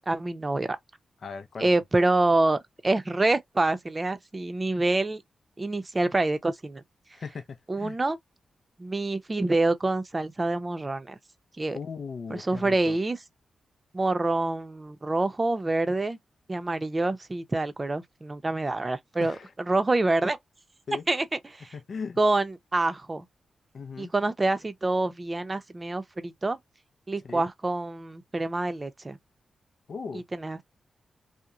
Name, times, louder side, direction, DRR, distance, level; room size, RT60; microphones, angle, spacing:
voice 1, 0.1-0.8 1.6-5.2 5.6-6.8 7.7-8.2 8.8-11.2 11.6-11.8 12.3-13.2 13.9-16.2 16.5-20.4 21.1-21.8 22.2-23.3 24.0-26.6 27.1-29.2 30.1-30.6, right 2 dB, 30° right, 0.6 m, -26 dB
voice 2, 1.2-1.7 7.1-8.0 11.7-13.0 19.2-19.5 20.9-21.0 21.7-22.2 23.7-24.1 27.2-27.5 29.9-30.2, left 5 dB, 65° left, 0.5 m, -38 dB
2.9 x 2.1 x 2.4 m
supercardioid pair, 45°, 0 cm